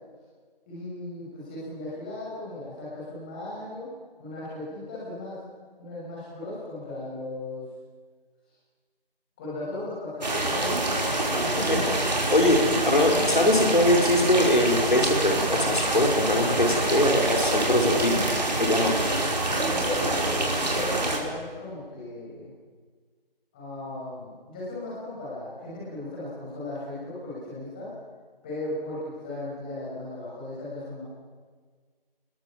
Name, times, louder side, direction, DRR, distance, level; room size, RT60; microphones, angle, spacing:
voice 1, 0.7-3.8 4.2-5.4 5.8-7.6 9.4-11.9 19.4-22.5 23.5-27.9 28.4-31.0, left 2 dB, 10° left, -8 dB, 6.1 m, -36 dB
sound 1, 10.2-21.2, right 2 dB, 45° right, 5.3 m, -26 dB
voice 2, 12.3-18.2 18.6-18.9, left 1 dB, 55° left, 2 dB, 4.5 m, -22 dB
28.0 x 21.5 x 7.4 m, 1.5 s
figure-of-eight pair, 175°, 30 cm